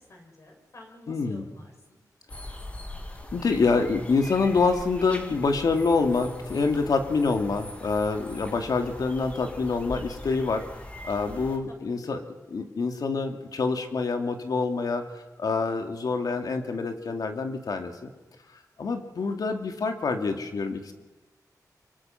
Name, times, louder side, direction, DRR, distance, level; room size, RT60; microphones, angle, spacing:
voice 1, 0.1-2.0 11.7-11.8 12.0-12.2, left 1 dB, 50° left, 2 dB, 6.9 m, -49 dB
voice 2, 1.1-1.4 3.3-10.7 11.0-12.2 12.5-15.0 15.4-17.9 18.8-20.9, left 4 dB, 70° left, 5 dB, 2.8 m, -26 dB
sound 1, 2.3-11.6, left 1 dB, 20° left, 2.8 m, -41 dB
26.0 x 24.0 x 6.1 m, 1.1 s
wide cardioid pair, 155°, 7 cm